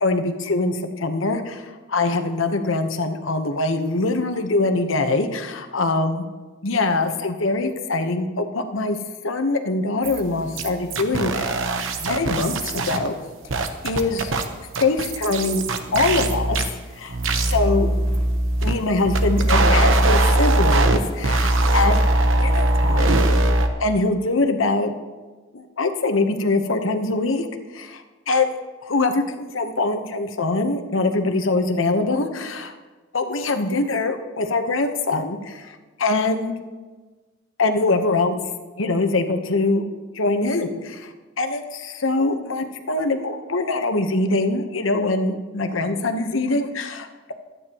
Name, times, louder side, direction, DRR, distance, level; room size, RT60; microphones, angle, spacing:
voice 1, 0.0-6.3 6.6-9.0 9.2-11.6 12.0-13.1 13.8-14.3 14.8-15.6 15.9-16.6 16.9-17.2 17.5-17.9 18.6-22.0 22.4-23.2 23.8-24.9 25.5-27.5 27.7-28.5 28.8-32.7 33.1-36.6 37.6-38.4 38.8-39.9 40.1-47.3, left 3 dB, 85° left, 6 dB, 1.1 m, -23 dB
sound 1, 10.0-10.2 10.6-13.1 13.5-14.4 14.7-16.7 17.1-18.7 19.0-21.0 21.2-23.7, right 2 dB, 85° right, 1.1 m, -20 dB
23.5 x 9.6 x 3.0 m, 1.3 s
head